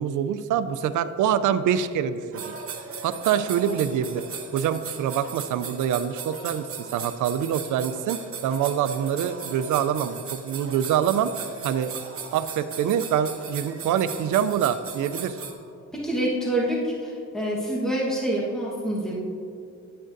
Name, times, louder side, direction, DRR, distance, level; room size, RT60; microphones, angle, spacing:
voice 1, 0.0-2.5 3.0-4.2 4.5-11.3 11.6-11.9 12.3-15.4, right 9 dB, 80° right, 12 dB, 0.5 m, -25 dB
sound 1, 2.3-15.5, right 6 dB, 45° right, 1.0 m, -37 dB
voice 2, 15.9-19.2, right 1 dB, ahead, -5 dB, 1.3 m, -26 dB
11.0 x 8.9 x 2.6 m, 2.6 s
cardioid pair, 140°, 30 cm